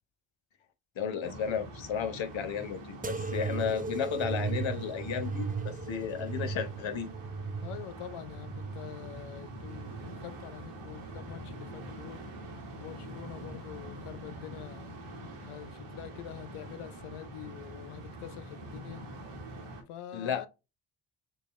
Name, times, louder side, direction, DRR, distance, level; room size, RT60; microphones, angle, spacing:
voice 1, 1.0-7.1 20.1-20.5, left 7 dB, 65° left, 1.3 m, -33 dB
sound 1, 1.2-19.8, right 1 dB, 90° right, 2.0 m, -45 dB
sound 2, 3.0-10.2 10.8-11.5 12.3-12.8 13.8-13.9, right 4 dB, 20° right, 0.5 m, -37 dB
voice 2, 7.6-12.3 12.7-14.9 15.4-19.1 19.9-20.5, left 11 dB, 90° left, 0.7 m, -45 dB
6.7 x 2.4 x 3.1 m
supercardioid pair, 55°, 49 cm